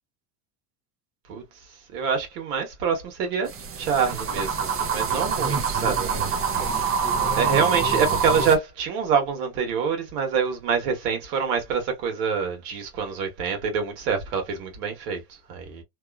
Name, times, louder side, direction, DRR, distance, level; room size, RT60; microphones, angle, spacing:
voice 1, 1.3-7.0 7.3-15.8, right 6 dB, 85° right, 1.4 m, -26 dB
sound 1, 3.5-8.6, right 6 dB, 30° right, 0.6 m, -25 dB
2.9 x 2.4 x 2.3 m
supercardioid pair, 115°, 46 cm